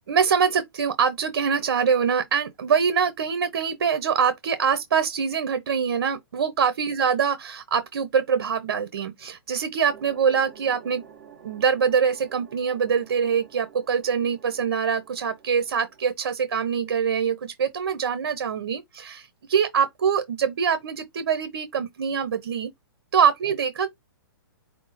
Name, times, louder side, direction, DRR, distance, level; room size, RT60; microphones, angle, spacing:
voice 1, 0.0-11.0 11.4-22.7 23.1-23.9, right 7 dB, 50° right, 0.7 m, -24 dB
sound 1, 9.8-16.1, right 7 dB, 30° right, 2.2 m, -50 dB
5.3 x 2.1 x 4.0 m
hypercardioid pair, 180°, 12 cm